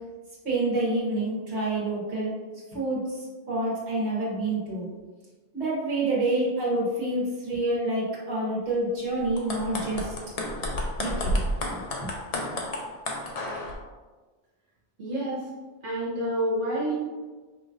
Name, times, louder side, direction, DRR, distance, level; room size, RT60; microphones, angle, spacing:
voice 1, 0.5-2.3 2.7-4.9 5.5-10.1 11.0-11.4 11.7-11.8, right 2 dB, 70° right, -7 dB, 1.7 m, -28 dB
sound 1, 9.2-13.7, left 1 dB, 45° left, 0.6 m, -31 dB
voice 2, 15.0-15.5 15.8-16.9, right 1 dB, 85° right, -8 dB, 1.6 m, -28 dB
5.5 x 3.1 x 2.6 m, 1.3 s
omnidirectional pair, 1.2 m